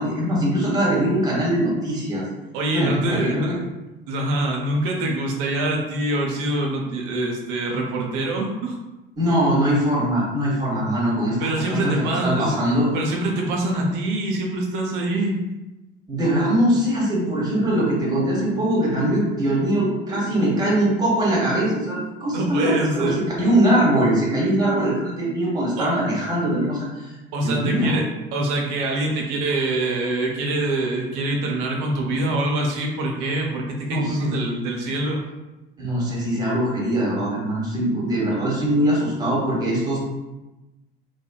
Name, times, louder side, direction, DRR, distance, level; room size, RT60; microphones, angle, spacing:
voice 1, 0.0-2.2 2.7-3.6 9.2-12.9 16.1-27.1 27.4-28.0 33.9-34.3 35.8-40.0, right 1 dB, 15° right, -5 dB, 1.0 m, -22 dB
voice 2, 2.5-3.5 4.0-8.8 11.4-12.6 12.9-15.3 22.3-23.2 25.8-25.9 27.3-28.1 28.3-35.2, right 2 dB, 55° right, 0 dB, 0.7 m, -24 dB
3.2 x 2.3 x 2.2 m, 1.0 s
figure-of-eight pair, 65°, 29 cm